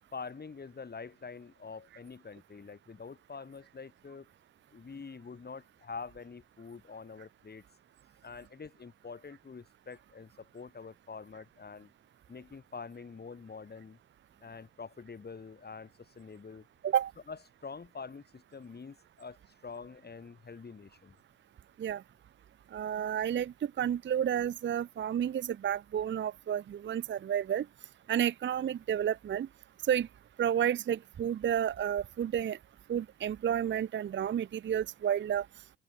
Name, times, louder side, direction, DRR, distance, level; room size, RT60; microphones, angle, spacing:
voice 1, 0.1-4.3 4.7-7.6 8.2-11.9 12.3-14.0 14.4-16.7 17.3-21.2, left 5 dB, 35° left, 3.7 m, -46 dB
voice 2, 22.7-27.7 28.1-29.5 29.8-30.1 30.4-32.6 32.9-35.5, right 9 dB, 40° right, 0.6 m, -31 dB
open air
cardioid pair, 90°, 30 cm